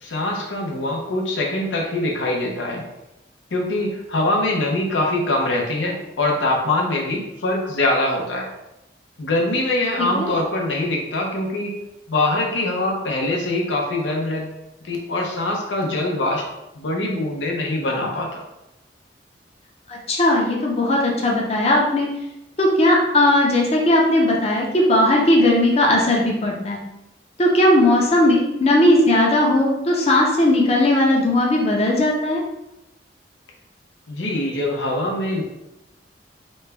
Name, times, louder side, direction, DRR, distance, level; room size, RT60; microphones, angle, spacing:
voice 1, 0.0-2.8 3.5-8.5 9.2-11.8 12.1-14.5 14.8-16.5 16.7-18.3 34.1-35.4, left 2 dB, 90° left, 0 dB, 0.7 m, -23 dB
voice 2, 19.9-22.1 22.6-26.8 27.4-32.4, left 1 dB, 35° left, -2 dB, 0.6 m, -17 dB
3.1 x 2.3 x 3.3 m, 0.92 s
head